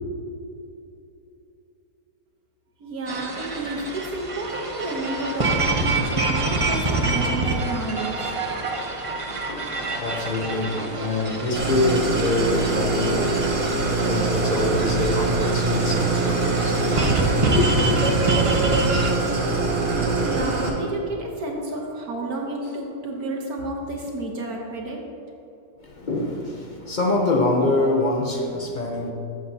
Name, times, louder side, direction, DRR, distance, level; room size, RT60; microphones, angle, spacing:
voice 1, 2.8-8.3 20.2-25.0, right 2 dB, 60° right, 1.4 m, -31 dB
sound 1, 3.1-19.1, right 2 dB, 35° right, 0.5 m, -27 dB
voice 2, 9.3-18.0 25.8-29.1, left 2 dB, 55° left, 0.5 m, -25 dB
Idling, 11.6-20.7, right 3 dB, 75° right, 2.3 m, -23 dB
13.5 x 7.5 x 2.8 m
omnidirectional pair, 1.9 m